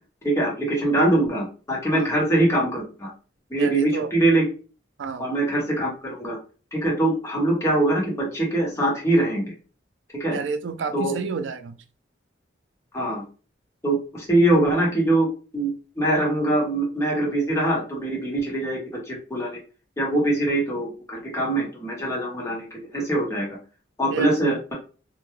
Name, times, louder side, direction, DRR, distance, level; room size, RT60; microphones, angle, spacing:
voice 1, 0.2-3.1 3.5-4.5 5.2-6.4 6.7-9.5 10.2-10.4 10.9-11.1 12.9-13.2 13.8-15.3 15.5-18.8 19.1-19.6 20.0-23.6 24.0-24.7, right 1 dB, 15° left, -3 dB, 1.0 m, -23 dB
voice 2, 3.6-4.1 5.0-5.3 10.3-11.8 24.1-24.6, right 5 dB, 90° right, 9 dB, 0.4 m, -30 dB
2.2 x 2.2 x 3.0 m, 0.35 s
head